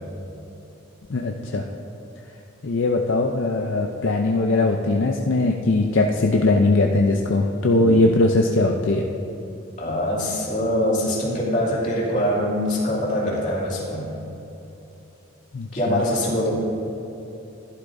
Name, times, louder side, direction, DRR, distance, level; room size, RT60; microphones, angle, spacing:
voice 1, 1.1-1.6 2.6-9.1 15.5-16.0, left 2 dB, 65° left, 2 dB, 0.5 m, -20 dB
voice 2, 9.8-14.1 15.7-16.5, left 1 dB, 35° left, -6 dB, 2.6 m, -23 dB
15.0 x 11.5 x 2.6 m, 2.9 s
head